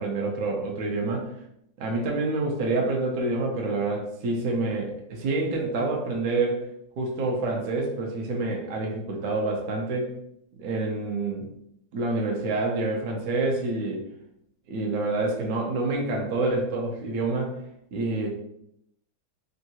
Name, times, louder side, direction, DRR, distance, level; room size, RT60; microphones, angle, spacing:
voice 1, 0.0-1.3 1.8-6.6 7.0-10.2 10.6-11.5 11.9-14.0 14.7-17.6 17.9-18.3, right 2 dB, 70° right, 0 dB, 0.8 m, -27 dB
3.7 x 2.3 x 2.7 m, 0.75 s
omnidirectional pair, 2.2 m